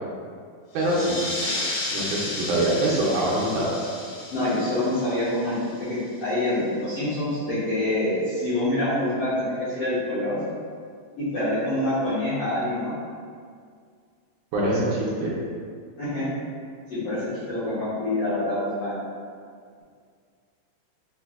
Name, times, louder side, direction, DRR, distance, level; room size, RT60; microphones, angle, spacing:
sound 1, 0.7-5.9, left 2 dB, 85° left, 2.3 m, -33 dB
voice 1, 0.7-1.2 1.9-3.8 14.5-15.3, right 1 dB, 80° right, -5 dB, 1.9 m, -24 dB
voice 2, 4.3-10.4 11.2-12.9 16.0-16.2 16.9-19.0, left 1 dB, 70° left, -13 dB, 1.5 m, -26 dB
5.6 x 2.0 x 2.4 m, 2.1 s
omnidirectional pair, 3.7 m